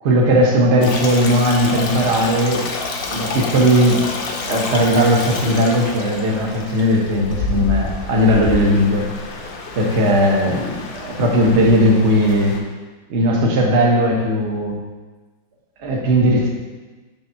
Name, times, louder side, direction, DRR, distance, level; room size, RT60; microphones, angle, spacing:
voice 1, 0.0-2.7 3.1-4.1 4.5-9.1 9.7-12.6 13.1-14.8 15.8-16.5, equal, 45° right, -1 dB, 1.0 m, -17 dB
Stream, 0.8-12.6, left 3 dB, 70° left, 1.3 m, -28 dB
5.2 x 3.4 x 5.5 m, 1.3 s
omnidirectional pair, 2.1 m